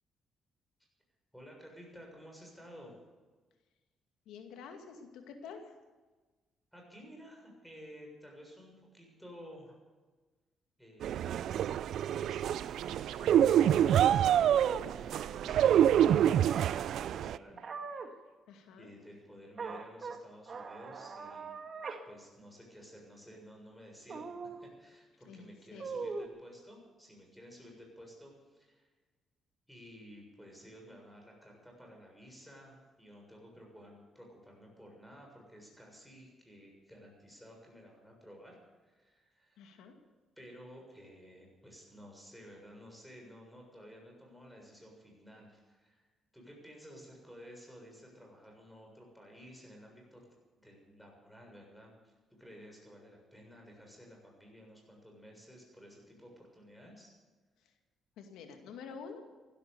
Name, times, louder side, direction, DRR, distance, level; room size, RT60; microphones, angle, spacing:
voice 1, 1.3-3.0 6.7-9.8 10.8-11.6 12.1-12.6 13.2-17.6 18.0-18.2 18.8-21.5 22.1-28.9 29.7-39.6 40.4-46.1 46.3-50.3 50.6-57.1, equal, ahead, 0 dB, 7.1 m, -53 dB
voice 2, 4.3-5.7 18.5-18.9 25.3-25.9 39.6-40.0 58.2-59.2, left 5 dB, 90° left, 4 dB, 2.3 m, -48 dB
sound 1, 11.0-17.4, right 10 dB, 70° right, 0.4 m, -26 dB
Scratching (performance technique), 12.2-17.7, right 11 dB, 85° right, 0.8 m, -47 dB
sound 2, 14.6-14.8 17.6-18.1 19.6-20.2 20.5-22.0 22.4-22.5 24.1-24.6 25.8-26.3, right 4 dB, 45° right, 1.7 m, -41 dB
15.5 x 12.5 x 7.0 m, 1.3 s
cardioid pair, 85°, 0 cm